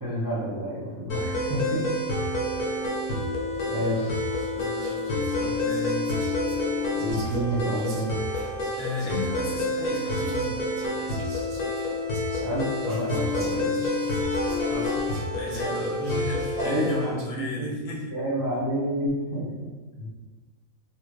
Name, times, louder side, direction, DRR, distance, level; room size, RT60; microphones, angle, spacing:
voice 1, 0.0-1.8 2.2-2.3 3.7-4.1 7.0-8.2 12.4-13.8 15.6-15.9 16.6-17.2 17.6-17.7 18.1-19.5 20.0-20.1, right 1 dB, 30° right, -8 dB, 0.4 m, -29 dB
sound 1, 1.1-17.1, left 2 dB, 75° left, 1.3 m, -28 dB
Whispering, 3.5-3.7 4.1-17.4, right 2 dB, 70° right, 1.1 m, -49 dB
voice 2, 4.5-6.1 8.8-10.9 14.6-15.0 15.3-18.1, left 2 dB, 45° left, -4 dB, 0.6 m, -35 dB
3.1 x 2.6 x 3.2 m, 1.3 s
omnidirectional pair, 1.7 m